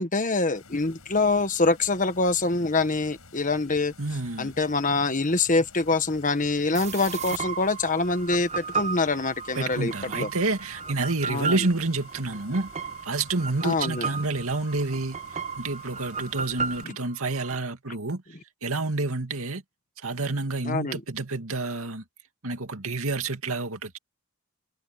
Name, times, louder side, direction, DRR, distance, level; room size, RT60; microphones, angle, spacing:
voice 1, 0.0-3.9 4.4-10.3 11.3-11.7 13.6-14.1 20.6-21.0, left 3 dB, 35° left, 1.5 m, -25 dB
sound 1, 0.5-16.8, left 3 dB, 90° left, 6.9 m, -51 dB
voice 2, 4.0-4.5 9.5-12.7 13.0-15.2 15.6-18.2 18.6-19.6 20.0-22.0 22.4-24.0, right 3 dB, 75° right, 2.4 m, -29 dB
sound 2, 6.7-17.6, right 5 dB, 30° right, 0.7 m, -35 dB
head